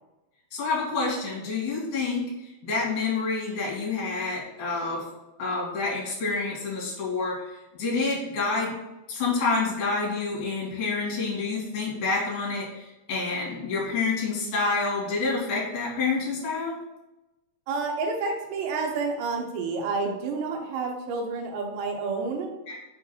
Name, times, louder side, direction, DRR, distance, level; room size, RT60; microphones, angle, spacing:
voice 1, 0.5-2.2 2.6-5.0 5.4-7.4 7.8-8.7 9.1-16.8 22.7-22.8, left 4 dB, 50° left, -5 dB, 3.5 m, -28 dB
voice 2, 17.7-22.5, right 4 dB, 75° right, 2 dB, 3.0 m, -29 dB
6.9 x 4.6 x 4.4 m, 1.0 s
omnidirectional pair, 5.5 m